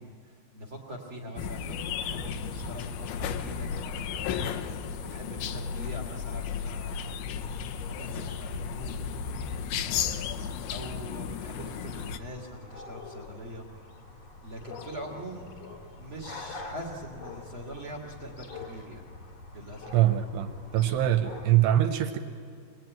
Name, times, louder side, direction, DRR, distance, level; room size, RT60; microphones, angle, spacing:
voice 1, 0.0-4.6 5.1-7.1 7.9-8.9 9.8-13.6 14.4-15.5 16.0-19.0 19.5-19.9, equal, 45° right, 1 dB, 1.8 m, -43 dB
sound 1, 1.4-12.2, left 7 dB, 75° left, 2.4 m, -34 dB
sound 2, 1.7-21.5, left 3 dB, 55° left, 2.0 m, -46 dB
voice 2, 19.9-22.2, right 12 dB, 80° right, 7 dB, 2.7 m, -24 dB
25.0 x 20.5 x 9.1 m, 2.3 s
omnidirectional pair, 5.2 m